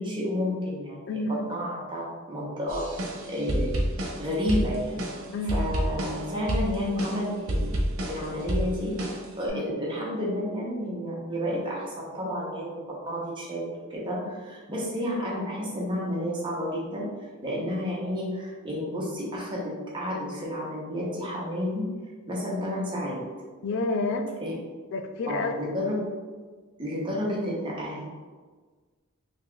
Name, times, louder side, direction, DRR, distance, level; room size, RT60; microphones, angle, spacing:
voice 1, 0.0-3.8 4.2-5.0 5.5-7.7 8.1-9.0 9.4-17.1 17.4-21.9 22.3-23.2 24.4-24.5 25.3-26.0 26.8-28.0, equal, 25° right, -4 dB, 0.7 m, -31 dB
voice 2, 1.1-1.5 5.3-5.8 9.5-9.6 23.6-24.3 24.9-25.5, left 2 dB, 60° left, 7 dB, 0.3 m, -29 dB
sound 1, 2.7-9.5, equal, 85° right, 0.7 m, -30 dB
4.0 x 2.8 x 2.3 m, 1.4 s
head